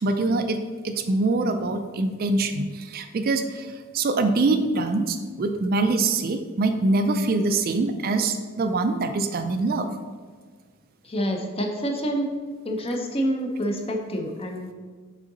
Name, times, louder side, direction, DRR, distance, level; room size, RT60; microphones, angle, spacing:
voice 1, 0.0-9.9, right 3 dB, 45° right, 7 dB, 0.4 m, -24 dB
voice 2, 11.0-12.3 12.6-14.7, equal, 25° left, 3 dB, 0.6 m, -27 dB
6.4 x 3.8 x 3.9 m, 1.5 s
head